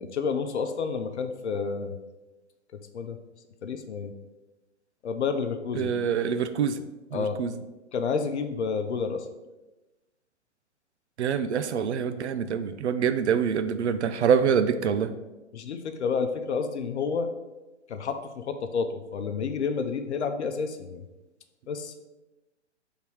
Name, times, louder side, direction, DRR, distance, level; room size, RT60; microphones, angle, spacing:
voice 1, 0.0-2.0 2.9-3.2 3.6-4.1 5.0-5.9 7.1-7.4 7.9-9.3 15.5-17.3 17.9-21.0 21.7-21.9, left 5 dB, 65° left, 7 dB, 0.8 m, -30 dB
voice 2, 5.8-6.8 7.1-7.5 11.2-15.1, right 7 dB, 65° right, 10 dB, 0.6 m, -25 dB
5.5 x 3.7 x 4.6 m, 1.1 s
figure-of-eight pair, 125°, 36 cm